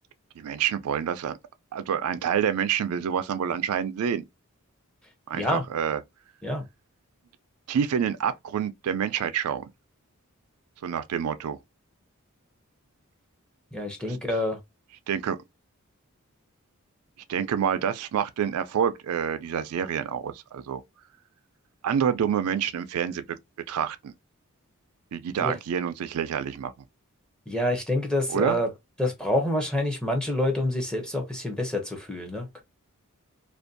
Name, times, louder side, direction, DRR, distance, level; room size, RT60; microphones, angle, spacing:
voice 1, 0.4-1.4 1.7-4.2 5.3-6.0 7.7-9.7 10.8-11.6 15.1-15.4 17.3-20.8 21.8-23.2 23.7-24.1 25.1-26.7 28.3-28.6, right 8 dB, 85° right, 0.4 m, -27 dB
voice 2, 5.3-5.6 6.4-6.7 13.7-14.6 25.4-25.6 27.5-28.7 29.0-32.6, left 1 dB, 5° left, 0.6 m, -27 dB
2.5 x 2.2 x 2.5 m
head